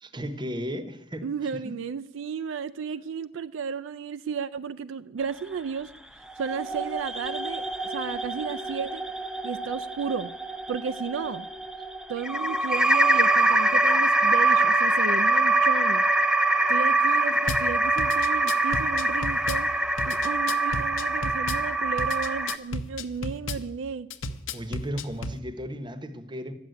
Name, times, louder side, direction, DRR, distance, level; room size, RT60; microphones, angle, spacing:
voice 1, 0.0-1.3 1.6-1.7 24.5-26.5, equal, 25° right, 11 dB, 0.9 m, -35 dB
voice 2, 1.2-9.0 9.4-10.3 10.7-11.5 12.1-16.1 16.7-19.7 20.1-24.1, right 6 dB, 70° right, 13 dB, 0.4 m, -33 dB
sound 1, 6.3-22.6, right 2 dB, 5° right, 0.5 m, -24 dB
Drum kit / Bass drum, 17.5-17.6 18.0-19.6 20.0-21.6 22.0-23.6 24.1-25.4, left 2 dB, 75° left, 0.8 m, -33 dB
11.5 x 7.9 x 9.2 m, 0.87 s
head